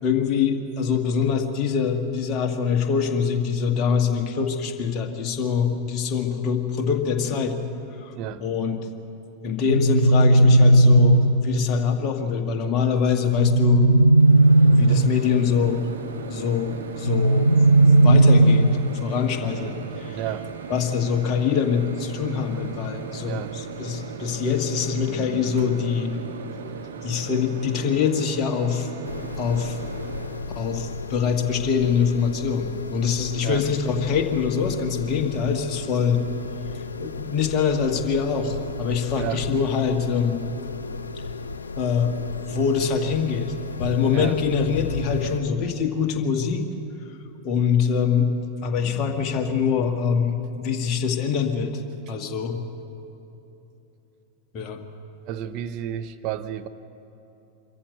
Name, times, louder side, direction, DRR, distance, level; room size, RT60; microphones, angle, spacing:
voice 1, 0.0-7.6 8.0-8.1 8.4-8.9 9.4-13.9 14.6-15.8 16.3-20.2 20.7-26.2 27.0-28.9 29.4-29.8 30.6-36.2 37.0-40.4 41.8-43.5 43.8-46.7 47.4-48.3 48.6-52.6 54.5-54.8, left 6 dB, 35° left, 3 dB, 1.9 m, -24 dB
sound 1, 9.6-11.6 13.3-15.3 17.1-19.0, right 1 dB, 85° right, 0.5 m, -16 dB
Microwave oven, 14.2-30.4, right 6 dB, 65° right, 1.4 m, -37 dB
voice 2, 20.1-20.5 23.3-23.5 33.4-33.6 39.2-39.4 44.1-44.4 55.3-56.7, right 10 dB, 40° right, 10 dB, 0.7 m, -31 dB
sound 2, 29.0-45.4, left 4 dB, 75° left, 0.7 m, -34 dB
25.0 x 14.5 x 7.9 m, 3.0 s
figure-of-eight pair, 90°, 0 cm